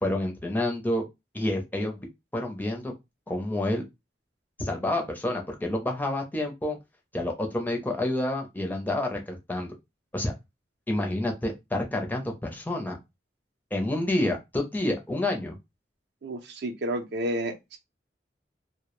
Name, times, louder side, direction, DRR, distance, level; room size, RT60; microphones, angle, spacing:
voice 1, 0.0-1.0 1.3-2.1 2.3-2.9 3.3-3.9 4.6-6.8 7.1-9.7 10.1-10.3 10.9-13.0 13.7-15.5, left 1 dB, 10° left, 0.4 m, -28 dB
voice 2, 16.2-17.8, right 1 dB, 65° right, 0.5 m, -31 dB
2.1 x 2.0 x 2.9 m
head